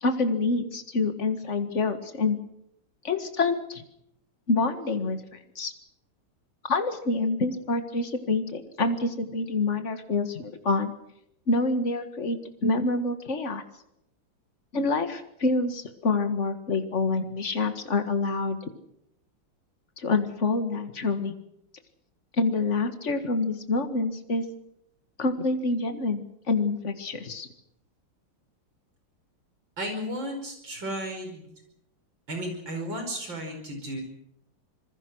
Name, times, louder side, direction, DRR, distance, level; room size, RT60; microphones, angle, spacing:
voice 1, 0.0-2.4 3.0-3.8 4.5-5.2 5.6-5.7 6.6-10.9 11.5-13.6 14.7-18.7 20.0-21.3 22.4-24.4 25.2-27.5, left 3 dB, 35° left, 7 dB, 2.0 m, -27 dB
voice 2, 29.8-31.5 32.3-34.0, equal, 60° right, 5 dB, 5.9 m, -34 dB
26.0 x 21.0 x 6.3 m, 0.78 s
omnidirectional pair, 2.3 m